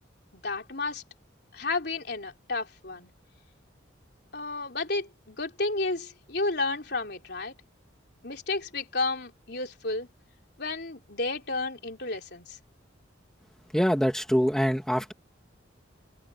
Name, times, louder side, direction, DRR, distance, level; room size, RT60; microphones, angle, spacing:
voice 1, 0.3-1.0 1.5-3.1 4.3-7.5 8.2-10.1 10.6-12.6, left 3 dB, 60° left, 4.0 m, -32 dB
voice 2, 13.7-15.1, equal, 5° left, 2.2 m, -24 dB
head